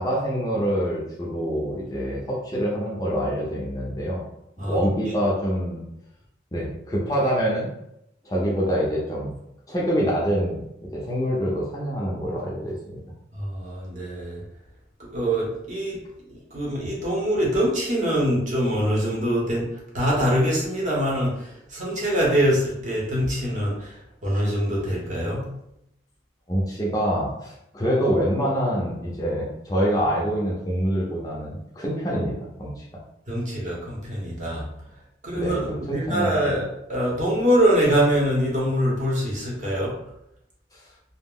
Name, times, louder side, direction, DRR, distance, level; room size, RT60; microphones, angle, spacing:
voice 1, 0.0-4.2 4.6-5.8 6.5-7.7 8.2-9.3 9.7-10.7 10.9-13.1 26.5-32.8 35.4-36.5 40.7-40.8, equal, 20° left, -5 dB, 0.5 m, -25 dB
voice 2, 4.6-5.1 13.3-14.4 15.0-16.0 16.3-25.5 33.3-34.7 35.2-40.0, equal, 40° right, -5 dB, 0.8 m, -24 dB
2.3 x 2.0 x 3.5 m, 0.80 s
head